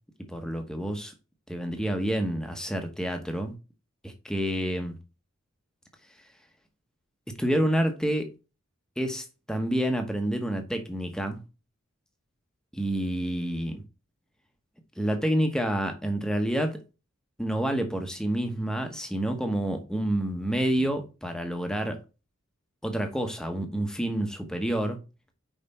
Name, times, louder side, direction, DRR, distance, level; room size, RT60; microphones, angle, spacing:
voice 1, 0.3-1.1 1.5-3.5 4.0-5.0 7.4-8.3 9.0-11.4 12.7-13.8 15.0-16.8 17.4-22.0 22.8-25.0, right 1 dB, 5° left, 1.0 m, -28 dB
5.5 x 5.1 x 4.2 m
head